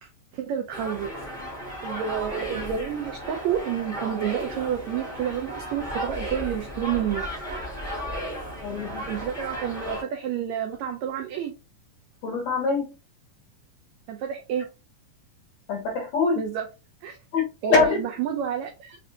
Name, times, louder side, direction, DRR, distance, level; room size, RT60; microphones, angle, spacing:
voice 1, 0.3-1.1 1.8-8.0 9.1-11.5 14.1-14.7 16.4-16.6 17.0-17.2 17.6-19.0, right 9 dB, 90° right, 3 dB, 1.6 m, -30 dB
sound 1, 0.7-10.0, equal, 5° left, 0.4 m, -34 dB
voice 2, 8.6-9.0 12.2-12.8 15.7-16.4 17.3-18.0, left 4 dB, 65° left, 1 dB, 2.1 m, -24 dB
5.4 x 2.5 x 2.7 m, 0.29 s
omnidirectional pair, 3.8 m